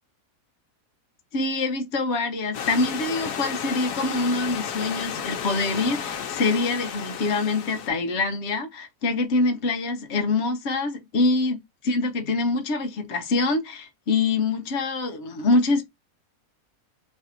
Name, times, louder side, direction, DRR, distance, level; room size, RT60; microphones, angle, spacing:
voice 1, 1.3-15.9, left 3 dB, 50° left, 1.0 m, -25 dB
Stream / Liquid, 2.5-7.9, left 7 dB, 80° left, 1.3 m, -32 dB
3.2 x 2.6 x 4.3 m
omnidirectional pair, 1.7 m